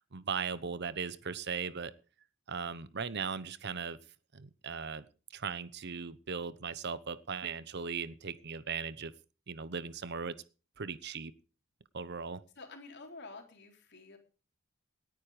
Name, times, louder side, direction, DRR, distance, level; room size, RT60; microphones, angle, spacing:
voice 1, 0.1-1.9 2.5-4.0 4.3-5.0 5.3-9.1 9.5-10.4 10.8-11.3 11.9-12.4, right 5 dB, 55° right, 16 dB, 0.9 m, -38 dB
voice 2, 12.6-14.2, left 3 dB, 55° left, 4 dB, 3.8 m, -49 dB
19.0 x 9.7 x 5.0 m, 0.36 s
head